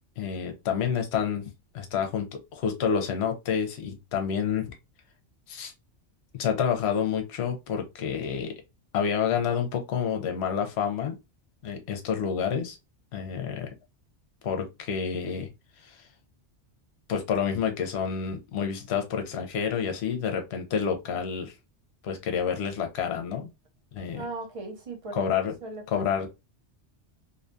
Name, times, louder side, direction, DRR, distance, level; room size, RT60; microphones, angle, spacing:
voice 1, 0.2-4.7 5.5-5.7 6.3-8.5 8.9-11.2 11.6-12.8 13.1-13.7 14.4-15.5 15.8-16.0 17.1-21.5 22.0-23.5 23.9-24.2 25.1-25.5 25.9-26.3, left 7 dB, 70° left, 0.9 m, -29 dB
voice 2, 24.1-25.3 25.6-26.3, right 3 dB, 35° right, 0.6 m, -38 dB
2.7 x 2.2 x 2.5 m
omnidirectional pair, 1.2 m